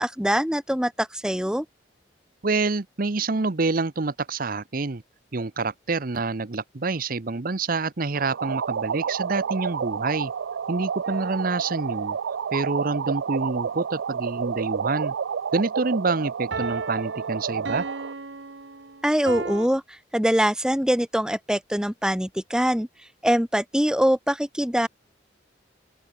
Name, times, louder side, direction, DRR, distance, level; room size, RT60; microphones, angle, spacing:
voice 1, 0.0-1.6 19.0-22.9 23.2-24.9, equal, 5° right, 1.0 m, -23 dB
voice 2, 2.4-5.0 5.3-10.3 10.7-12.2 12.5-15.1 15.5-17.9, right 3 dB, 50° right, 0.8 m, -27 dB
sound 1, 8.2-18.1, right 7 dB, 85° right, 0.4 m, -30 dB
sound 2, 11.0-12.1 16.5-19.7, right 3 dB, 70° right, 1.4 m, -36 dB
open air
head